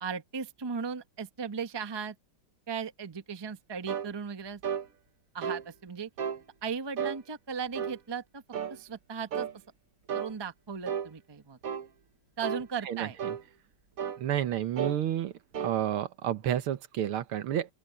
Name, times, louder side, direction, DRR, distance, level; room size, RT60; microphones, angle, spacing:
voice 1, 0.0-2.1 2.7-4.6 5.3-6.1 6.6-8.4 8.7-9.6 10.1-11.6 12.4-13.2, right 6 dB, 20° right, 0.6 m, -37 dB
sound 1, 3.9-4.1 4.6-4.9 5.4-5.6 6.2-6.4 7.0-7.2 7.7-8.0 8.5-8.8 9.3-9.5 10.1-10.3 10.9-11.1 11.6-11.9 12.4-12.7 13.2-13.4 14.0-14.2 14.8-15.0 15.5-15.8, right 8 dB, 50° right, 1.2 m, -33 dB
voice 2, 12.9-13.3 14.2-15.3 15.6-17.7, right 11 dB, 75° right, 1.9 m, -30 dB
open air
omnidirectional pair, 2.4 m